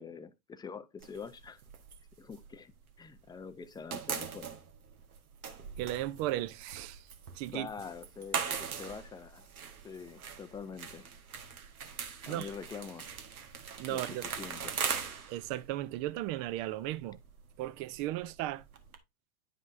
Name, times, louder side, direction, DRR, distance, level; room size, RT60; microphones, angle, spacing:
voice 1, 0.0-1.6 2.2-2.7 3.0-4.5 7.5-9.5 9.8-11.1 12.2-13.1 13.9-14.8, left 6 dB, 10° left, 0.4 m, -45 dB
sound 1, 1.0-3.3 3.5-19.0, right 6 dB, 90° right, 1.4 m, -41 dB
voice 2, 5.8-7.1 7.3-7.7 12.2-12.5 13.8-14.2 15.3-17.2 17.6-18.6, right 15 dB, 40° right, 0.6 m, -35 dB
9.7 x 5.3 x 2.6 m
hypercardioid pair, 110°, 42 cm